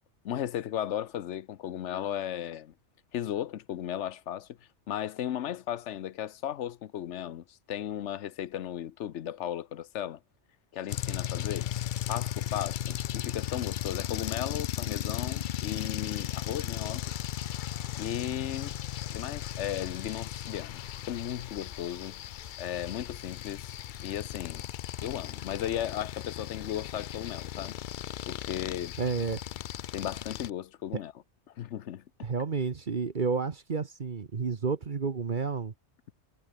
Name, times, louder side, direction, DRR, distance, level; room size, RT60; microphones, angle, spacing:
voice 1, 0.2-2.7 3.1-4.5 4.9-10.2 10.7-11.7 12.1-17.0 17.9-18.7 19.1-20.8 21.1-22.2 22.6-23.8 24.0-24.6 25.0-27.8 28.3-28.9 29.9-31.1 31.6-32.0, left 11 dB, 90° left, 1.1 m, -35 dB
sound 1, 10.9-30.5, left 11 dB, 60° left, 0.6 m, -36 dB
voice 2, 29.0-29.4 32.2-35.7, right 5 dB, 45° right, 1.2 m, -30 dB
omnidirectional pair, 1.2 m